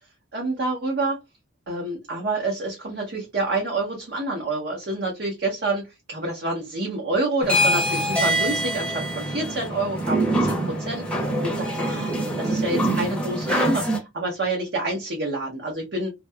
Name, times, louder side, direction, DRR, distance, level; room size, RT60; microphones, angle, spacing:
voice 1, 0.3-1.2 1.7-12.1 12.4-16.1, right 2 dB, 55° right, -2 dB, 0.8 m, -28 dB
sound 1, 7.4-14.0, right 1 dB, 5° left, 0.6 m, -24 dB
2.7 x 2.2 x 2.2 m, 0.21 s
head